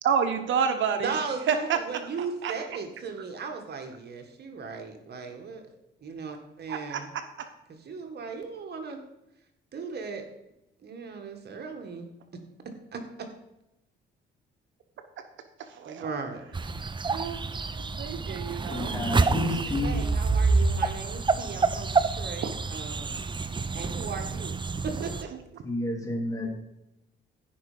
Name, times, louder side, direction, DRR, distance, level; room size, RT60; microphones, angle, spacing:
voice 1, 0.0-1.2 1.5-2.1 2.4-2.5 6.7-7.5 15.2-15.3 15.6-16.1 17.1-19.0 21.0-21.1 22.4-22.5 25.3-25.4, right 7 dB, 75° right, 7 dB, 1.1 m, -30 dB
voice 2, 1.0-5.6 6.0-7.1 7.9-9.0 9.7-10.2 10.8-12.1 12.9-13.0 15.9-16.4 19.8-23.2 23.7-25.1, right 5 dB, 55° right, 5 dB, 1.9 m, -37 dB
sound 1, 16.5-25.2, right 4 dB, 25° right, 0.6 m, -28 dB
voice 3, 18.7-20.0 25.6-26.5, left 1 dB, 15° left, 1 dB, 3.4 m, -30 dB
15.0 x 5.7 x 5.2 m, 0.89 s
cardioid pair, 90°, 20 cm